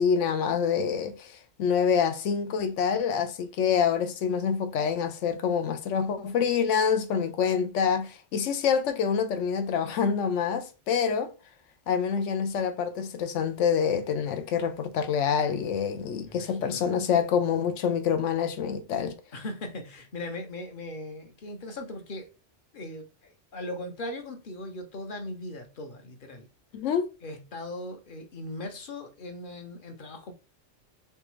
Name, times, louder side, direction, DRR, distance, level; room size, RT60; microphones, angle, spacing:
voice 1, 0.0-11.3 11.9-19.2 26.7-27.1, left 7 dB, 80° left, 1.0 m, -26 dB
voice 2, 16.3-16.9 19.3-22.3 22.7-26.5 27.2-30.3, left 1 dB, 50° left, 0.9 m, -39 dB
3.6 x 3.3 x 3.0 m
omnidirectional pair, 1.2 m